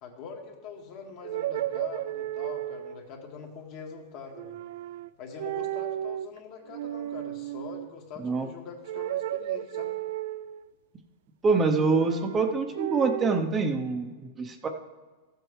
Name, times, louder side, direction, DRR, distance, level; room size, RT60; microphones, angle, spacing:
voice 1, 0.0-4.6 5.2-10.0, left 5 dB, 50° left, 1 dB, 1.9 m, -43 dB
sound 1, 1.2-3.0 4.3-5.1 5.4-6.3 6.7-7.9 8.9-10.7 11.8-13.5, right 14 dB, 70° right, 0.3 m, -33 dB
voice 2, 11.4-14.7, right 4 dB, 20° right, 5 dB, 0.7 m, -25 dB
14.0 x 7.9 x 3.2 m, 1.4 s
supercardioid pair, 140°, 0 cm